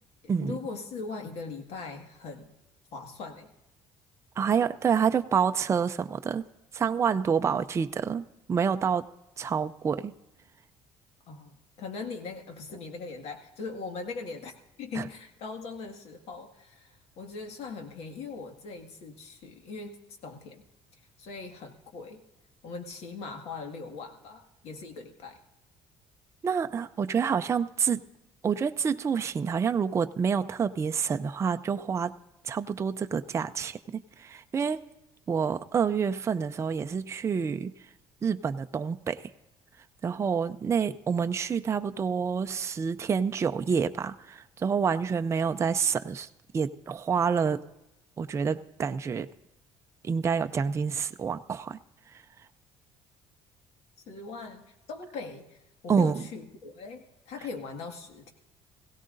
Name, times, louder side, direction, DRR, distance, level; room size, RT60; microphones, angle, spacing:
voice 1, 0.4-2.5 2.9-3.5 7.4-7.6 11.3-20.0 20.2-20.6 21.2-22.2 22.6-25.4 54.1-55.6 55.8-58.3, left 4 dB, 65° left, 5 dB, 1.8 m, -40 dB
voice 2, 4.4-6.5 6.7-9.1 9.4-10.1 15.0-15.1 26.4-28.0 28.4-32.2 32.4-34.9 35.3-37.7 38.2-39.3 40.0-46.3 46.5-47.6 48.2-49.3 50.0-51.8 52.1-52.2 55.9-56.2, right 6 dB, 25° right, 9 dB, 0.4 m, -28 dB
17.0 x 16.5 x 2.6 m, 0.96 s
cardioid pair, 120°, 11 cm